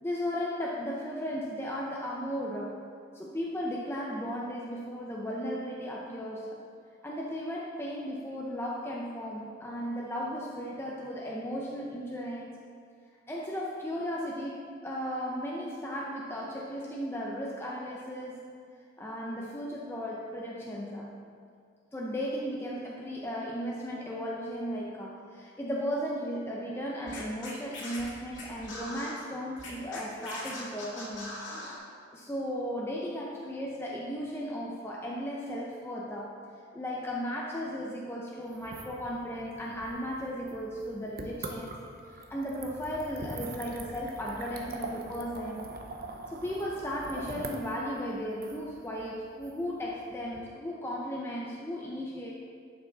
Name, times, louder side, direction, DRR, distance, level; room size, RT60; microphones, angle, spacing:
voice 1, 0.0-2.8 3.1-6.6 7.0-12.6 13.3-18.4 19.0-21.1 21.9-31.4 32.1-36.4 36.7-41.7 42.1-45.7 46.3-52.3, equal, 15° left, -3 dB, 0.6 m, -35 dB
Scratching (performance technique), 27.1-29.1 29.6-31.8, left 2 dB, 65° left, 2.4 m, -41 dB
sound 1, 38.5-50.4, right 2 dB, 50° right, 0.8 m, -43 dB
11.0 x 5.9 x 4.0 m, 2.2 s
head